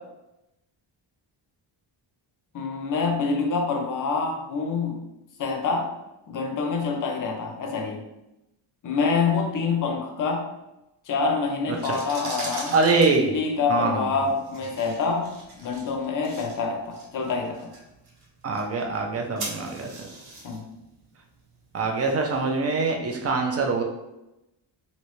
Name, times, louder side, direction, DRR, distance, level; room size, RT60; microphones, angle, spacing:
voice 1, 2.5-5.0 5.4-5.9 6.3-8.1 8.8-10.4 11.1-12.8 13.0-17.7 20.4-20.7 23.7-23.8, left 4 dB, 40° left, 3 dB, 0.6 m, -26 dB
sound 1, 11.7-22.5, right 2 dB, 55° right, 0.9 m, -42 dB
voice 2, 12.7-13.3 13.7-14.0 18.4-20.1 21.7-23.8, right 3 dB, 35° right, 2 dB, 0.4 m, -24 dB
3.1 x 2.7 x 3.0 m, 0.92 s
wide cardioid pair, 165°, 47 cm